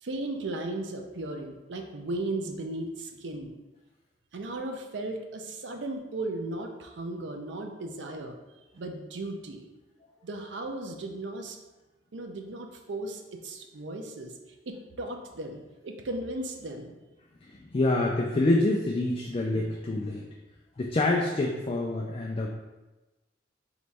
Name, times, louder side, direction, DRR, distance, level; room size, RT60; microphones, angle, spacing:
voice 1, 0.0-3.5 4.3-8.3 8.7-9.7 10.2-11.6 12.1-14.3 14.7-16.9, right 2 dB, 85° right, 4 dB, 0.6 m, -36 dB
voice 2, 17.4-20.2 20.8-22.5, left 2 dB, 30° left, -1 dB, 0.3 m, -26 dB
3.9 x 3.1 x 3.4 m, 1.1 s
head